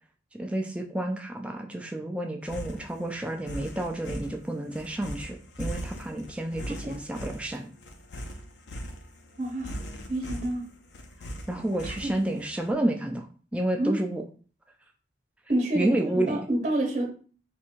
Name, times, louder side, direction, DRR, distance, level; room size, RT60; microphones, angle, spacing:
voice 1, 0.3-7.7 11.5-14.2 15.7-16.5, right 1 dB, 5° right, 0.3 m, -30 dB
sound 1, 2.4-12.5, equal, 70° left, 0.6 m, -39 dB
voice 2, 9.4-9.7 10.1-10.6 11.8-12.1 13.8-14.0 15.5-16.0 16.3-17.1, right 1 dB, 40° right, 0.9 m, -28 dB
3.5 x 2.6 x 4.4 m
head